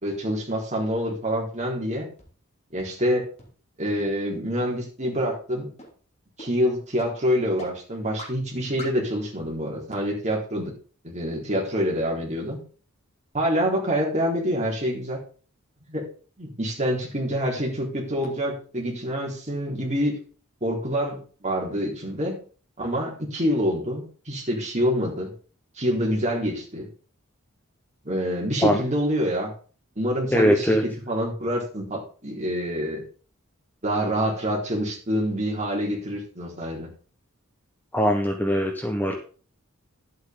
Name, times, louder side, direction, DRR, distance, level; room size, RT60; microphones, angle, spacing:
voice 1, 0.0-2.1 2.7-3.3 3.8-5.7 6.4-10.7 11.0-12.6 13.3-15.2 15.9-16.1 16.4-20.2 20.6-22.4 22.8-25.3 25.8-26.9 28.0-29.5 30.0-30.8 31.1-33.0 33.8-36.9, equal, 30° right, -2 dB, 3.8 m, -26 dB
sound 1, 2.2-2.3 2.8-2.9 3.4-3.5 4.0-4.1 4.6-4.7 5.2-5.3 5.8-5.9 6.4-6.5 7.0-7.1 7.6-7.7 8.2-8.3 8.8-8.9, equal, 30° left, 3.2 m, -39 dB
voice 2, 30.3-30.8 37.9-39.1, equal, 10° left, 3 dB, 1.1 m, -21 dB
11.0 x 8.3 x 3.9 m, 0.39 s
head